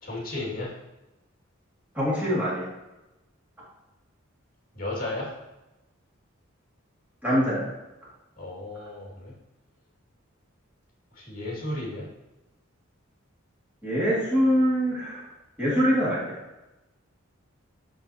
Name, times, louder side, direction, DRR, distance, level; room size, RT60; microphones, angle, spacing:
voice 1, 0.0-0.8 4.7-5.4 8.4-9.3 11.1-12.1, left 2 dB, 45° left, -4 dB, 2.2 m, -34 dB
voice 2, 1.9-2.6 7.2-7.7 13.8-15.2 15.6-16.4, equal, 10° right, -9 dB, 2.2 m, -24 dB
7.9 x 5.3 x 2.9 m, 1.0 s
head